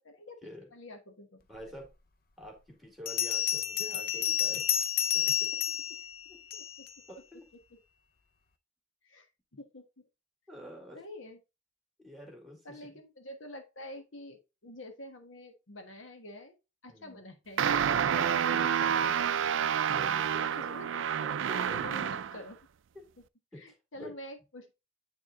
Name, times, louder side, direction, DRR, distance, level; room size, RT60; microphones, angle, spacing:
voice 1, 0.7-1.4 6.8-7.2 9.0-10.1 10.9-11.4 12.6-16.6 16.8-19.1 20.5-20.9 21.5-22.6 23.5-24.7, left 1 dB, 75° left, 5 dB, 1.3 m, -47 dB
voice 2, 1.5-1.9 2.4-4.6 5.1-5.3 6.3-6.6 7.1-7.5 10.5-11.0 12.0-12.9 16.9-17.2 17.9-19.4 19.6-21.8 23.5-23.6 23.9-24.1, equal, ahead, 1 dB, 2.2 m, -48 dB
Bell, 1.8-1.9 3.1-6.9, left 9 dB, 45° left, 0.6 m, -30 dB
sound 1, 17.6-22.4, right 8 dB, 70° right, 0.4 m, -29 dB
9.0 x 3.6 x 3.8 m, 0.27 s
head